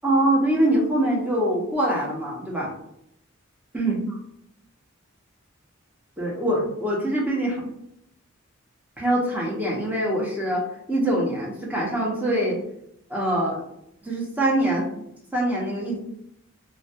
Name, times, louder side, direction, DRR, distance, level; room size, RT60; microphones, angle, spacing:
voice 1, 0.0-2.7 3.7-4.0 6.2-7.6 9.0-12.6 13.1-13.6 14.0-14.8 15.3-16.0, right 1 dB, 10° right, -4 dB, 0.6 m, -24 dB
2.2 x 2.2 x 2.6 m, 0.76 s
head